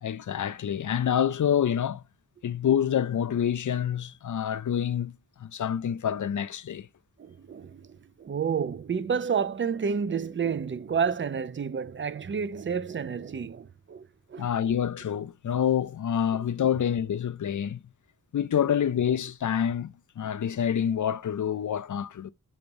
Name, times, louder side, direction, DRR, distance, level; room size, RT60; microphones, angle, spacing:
voice 1, 0.0-2.0 2.4-6.9 14.4-17.8 18.3-22.3, left 9 dB, 55° left, 0.5 m, -27 dB
voice 2, 7.2-14.5, right 6 dB, 35° right, 0.4 m, -30 dB
7.1 x 2.9 x 5.2 m
cardioid pair, 45°, 36 cm